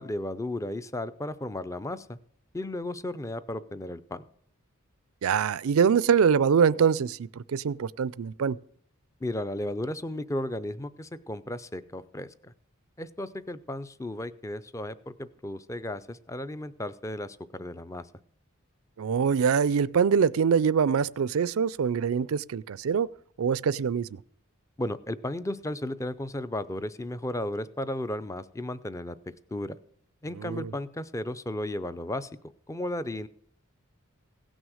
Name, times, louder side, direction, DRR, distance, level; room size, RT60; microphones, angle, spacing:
voice 1, 0.0-2.2 2.5-4.2 9.2-12.5 13.0-18.0 24.8-29.2 29.5-29.8 30.2-32.3 32.7-33.3, left 1 dB, 15° left, 0.5 m, -34 dB
voice 2, 5.2-8.6 19.0-23.1 23.4-24.1 30.4-30.7, right 6 dB, 75° right, 0.4 m, -24 dB
16.5 x 6.3 x 6.3 m
head